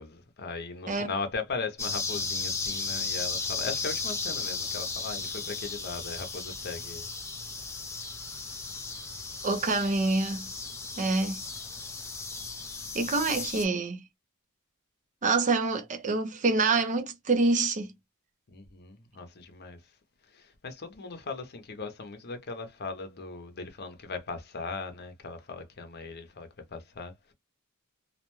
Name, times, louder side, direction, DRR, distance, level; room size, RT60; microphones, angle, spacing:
voice 1, 0.0-7.1 18.5-19.8 20.3-27.3, left 4 dB, 50° left, 0.7 m, -38 dB
sound 1, 1.8-13.6, left 4 dB, 15° left, 0.5 m, -35 dB
voice 2, 9.4-10.5 11.0-11.4 12.9-14.0 15.2-17.9, right 3 dB, 35° right, 0.5 m, -26 dB
2.4 x 2.2 x 3.0 m
head